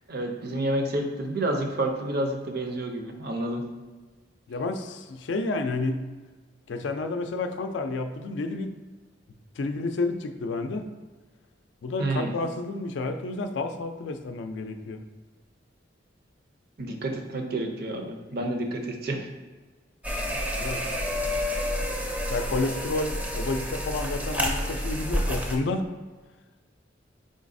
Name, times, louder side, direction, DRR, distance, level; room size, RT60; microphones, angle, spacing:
voice 1, 0.1-3.6 12.0-12.3 16.8-19.3, right 1 dB, 55° right, 3 dB, 0.5 m, -29 dB
voice 2, 4.5-6.0 6.7-8.7 9.6-10.8 11.8-15.0 18.3-18.5 20.6-20.8 22.3-25.9, left 3 dB, 70° left, 7 dB, 0.4 m, -30 dB
sound 1, 20.0-25.6, equal, 10° right, 0.5 m, -29 dB
4.0 x 3.8 x 2.6 m, 1.3 s
head